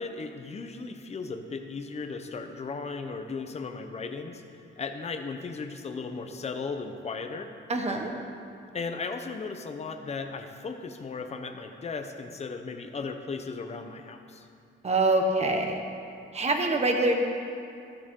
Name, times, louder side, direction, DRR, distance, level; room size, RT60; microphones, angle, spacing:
voice 1, 0.0-7.5 8.7-14.5, left 4 dB, 35° left, 6 dB, 0.8 m, -36 dB
voice 2, 7.7-8.1 14.8-15.8 16.3-17.2, right 2 dB, 35° right, 3 dB, 1.3 m, -25 dB
13.5 x 13.0 x 3.8 m, 2.5 s
wide cardioid pair, 145°, 20 cm